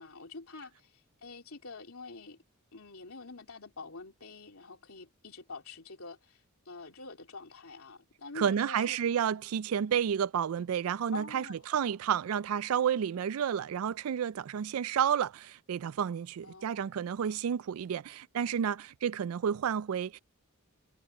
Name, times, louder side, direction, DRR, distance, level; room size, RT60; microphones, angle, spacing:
voice 1, 0.0-2.4 2.7-9.0 11.1-11.7 16.4-16.9, left 3 dB, 75° left, 3.3 m, -46 dB
voice 2, 8.4-20.2, right 8 dB, 80° right, 0.4 m, -31 dB
head